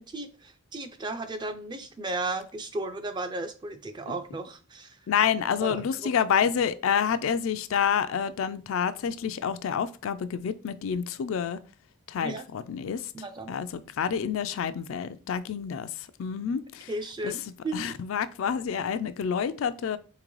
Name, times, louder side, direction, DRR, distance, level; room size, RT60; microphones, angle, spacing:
voice 1, 0.0-5.0 5.6-6.1 12.2-12.4 13.1-13.5 16.9-17.9, right 2 dB, 20° right, 0.4 m, -35 dB
voice 2, 5.1-11.6 12.1-13.0 13.5-15.9 16.2-16.9 17.2-17.3 17.7-20.0, left 7 dB, 70° left, 0.3 m, -28 dB
3.7 x 3.6 x 3.1 m
head